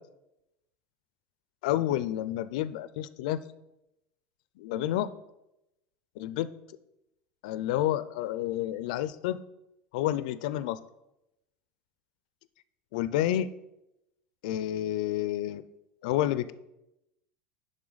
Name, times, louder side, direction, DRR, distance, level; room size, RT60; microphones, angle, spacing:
voice 1, 1.6-3.4 4.6-5.1 6.2-6.5 7.4-9.4 9.9-10.8 12.9-13.5 14.4-15.6 16.0-16.5, left 13 dB, 80° left, 14 dB, 0.4 m, -29 dB
11.0 x 3.8 x 3.9 m, 0.89 s
supercardioid pair, 140°, 4 cm